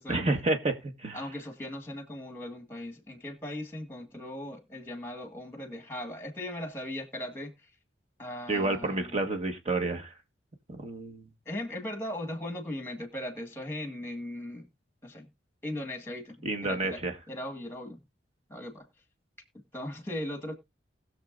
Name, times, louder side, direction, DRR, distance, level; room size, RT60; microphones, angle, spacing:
voice 1, 0.1-1.2 8.5-10.1 10.8-11.3 16.4-17.1, right 2 dB, 35° right, 1.5 m, -29 dB
voice 2, 1.1-7.5 8.2-9.2 11.5-14.7 15.0-15.3 15.6-17.0 17.3-18.0 18.5-18.9 19.7-20.5, left 1 dB, 15° left, 1.7 m, -38 dB
20.0 x 6.7 x 2.5 m
head